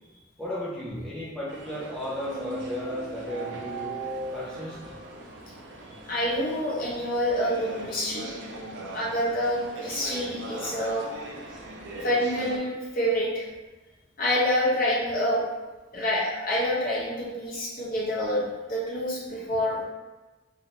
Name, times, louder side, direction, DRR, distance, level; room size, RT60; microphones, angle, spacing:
voice 1, 0.4-3.9 4.3-4.8 17.5-17.6, left 1 dB, 5° left, -9 dB, 0.5 m, -34 dB
sound 1, 1.5-12.6, right 2 dB, 65° right, 0.4 m, -39 dB
voice 2, 6.0-8.3 8.9-11.1 12.0-13.4 14.2-15.4 15.9-19.8, equal, 45° left, -6 dB, 0.9 m, -27 dB
3.1 x 2.7 x 2.8 m, 1.2 s
head